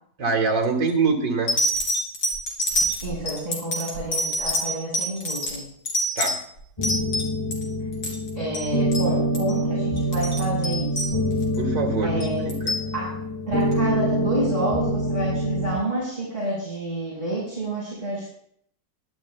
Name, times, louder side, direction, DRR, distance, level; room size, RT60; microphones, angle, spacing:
voice 1, 0.2-1.5 6.2-6.4 11.6-12.8, right 4 dB, 85° right, 2 dB, 2.5 m, -24 dB
sound 1, 0.6-0.9 1.5-7.6 7.9-8.3 8.5-8.7 8.9-9.1 9.3-9.6 10.0-11.6 12.2-12.9 13.7-13.8, equal, 90° left, 4.0 m, -26 dB
voice 2, 3.0-5.7 8.4-11.2 12.0-12.4 12.9-13.1 13.5-18.3, right 1 dB, 30° right, -7 dB, 5.6 m, -29 dB
sound 2, 6.8-15.8, equal, 20° left, 2.0 m, -25 dB
22.5 x 12.0 x 2.3 m, 0.67 s
omnidirectional pair, 1.9 m